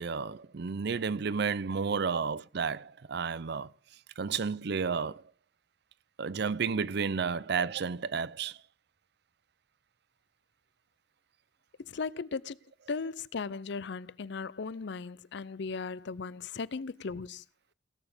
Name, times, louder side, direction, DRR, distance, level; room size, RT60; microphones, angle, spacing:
voice 1, 0.0-3.7 4.2-5.2 6.2-8.6, right 5 dB, 60° right, 0.5 m, -32 dB
voice 2, 11.9-12.6 12.9-17.4, left 4 dB, 65° left, 0.5 m, -37 dB
17.5 x 7.1 x 5.1 m
head